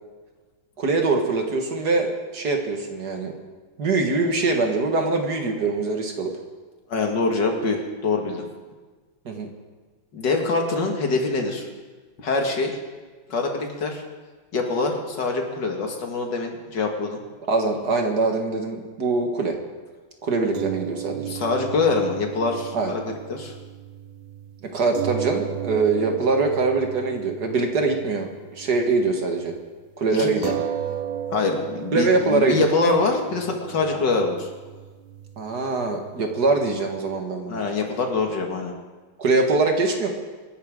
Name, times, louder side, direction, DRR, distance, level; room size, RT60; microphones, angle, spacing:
voice 1, 0.8-3.4 3.8-6.3 9.3-9.5 17.5-19.6 20.2-21.3 22.7-23.0 24.6-29.6 30.0-30.6 31.9-32.7 35.4-37.6 39.2-40.1, right 3 dB, 55° right, 3 dB, 2.1 m, -23 dB
voice 2, 6.9-8.5 10.1-11.7 12.2-12.8 13.3-14.0 14.5-17.2 21.3-23.5 30.1-30.5 31.3-34.5 37.5-38.7, left 3 dB, 60° left, 2 dB, 2.5 m, -24 dB
sound 1, 20.5-29.1 29.4-29.5 30.4-37.0, right 10 dB, 90° right, 1.7 m, -35 dB
26.0 x 11.5 x 3.7 m, 1.4 s
omnidirectional pair, 2.1 m